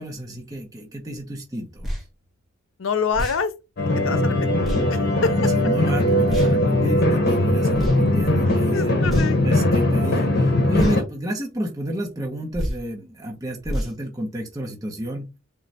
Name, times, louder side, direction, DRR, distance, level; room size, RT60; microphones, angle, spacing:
voice 1, 0.0-1.9 5.3-9.0 9.4-15.4, right 1 dB, 20° right, 0.9 m, -31 dB
sound 1, 1.8-2.0 3.1-3.4 4.6-4.8 6.3-6.5 7.7-8.0 9.0-9.5 10.7-11.0 12.5-12.8 13.6-13.9, equal, ahead, 1.4 m, -27 dB
voice 2, 2.8-3.5 4.0-4.5 4.9-5.5 8.7-9.6, left 5 dB, 80° left, 0.6 m, -26 dB
sound 2, 3.8-11.0, left 1 dB, 50° left, 1.1 m, -20 dB
3.7 x 3.2 x 4.1 m
head